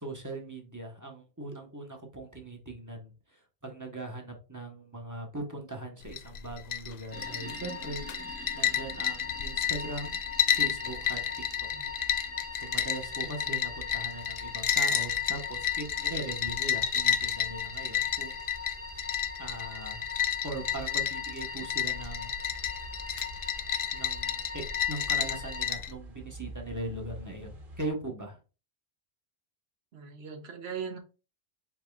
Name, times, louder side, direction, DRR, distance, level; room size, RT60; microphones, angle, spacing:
voice 1, 0.0-10.2 10.5-11.2 11.6-11.7 12.5-18.4 19.4-20.0 20.4-22.3 23.9-28.4, right 2 dB, 20° right, 1.1 m, -40 dB
sound 1, 6.0-25.9, left 9 dB, 55° left, 0.5 m, -31 dB
sound 2, 7.1-25.7, left 3 dB, 15° left, 1.0 m, -42 dB
sound 3, 8.5-27.9, equal, 50° right, 1.4 m, -50 dB
voice 2, 29.9-31.0, right 6 dB, 70° right, 1.1 m, -39 dB
5.2 x 4.4 x 2.3 m
omnidirectional pair, 1.1 m